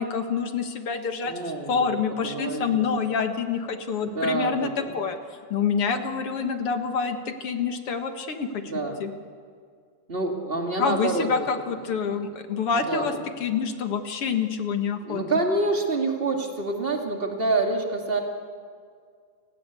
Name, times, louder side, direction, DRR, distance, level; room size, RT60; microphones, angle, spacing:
voice 1, 0.0-1.3 1.7-5.2 5.5-9.1 10.8-13.1 13.4-15.2, left 6 dB, 55° left, 6 dB, 2.2 m, -27 dB
voice 2, 1.2-1.9 2.2-2.8 4.0-4.7 8.7-9.0 10.1-11.3 11.7-11.8 12.1-12.2 12.7-13.2 15.0-18.2, right 2 dB, 20° right, 2 dB, 2.4 m, -27 dB
29.5 x 19.5 x 8.4 m, 2.1 s
omnidirectional pair, 3.3 m